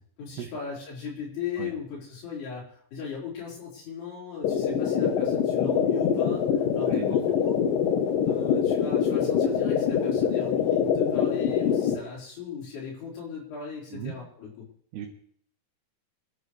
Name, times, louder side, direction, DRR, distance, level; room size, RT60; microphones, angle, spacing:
voice 1, 0.2-7.6 8.3-14.7, left 6 dB, 85° left, -5 dB, 6.5 m, -37 dB
sound 1, 4.4-12.0, left 8 dB, 70° left, 2.5 m, -24 dB
voice 2, 6.9-7.2 13.9-14.2 14.9-15.1, right 8 dB, 90° right, 0 dB, 3.4 m, -36 dB
27.5 x 11.0 x 3.3 m, 0.62 s
omnidirectional pair, 4.6 m